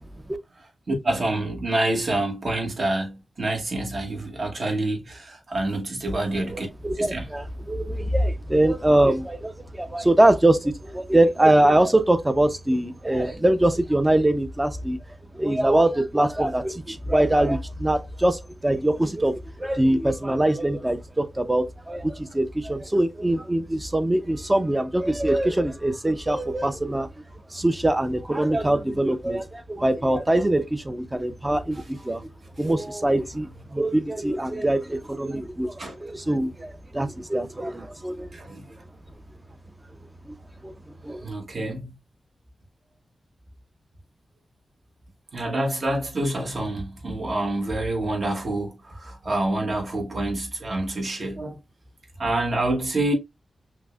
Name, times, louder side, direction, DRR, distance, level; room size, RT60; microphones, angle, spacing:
voice 1, 0.9-6.7 7.0-7.2 35.8-35.9 38.3-38.6 41.2-42.0 45.3-51.6 52.2-53.1, right 2 dB, 45° right, 1.0 m, -27 dB
voice 2, 6.5-15.0 15.3-27.1 27.5-32.3 32.6-38.5 40.2-40.3 40.6-40.7 41.0-41.3, right 1 dB, 15° right, 0.5 m, -23 dB
5.9 x 2.1 x 2.3 m
wide cardioid pair, 110°, 0 cm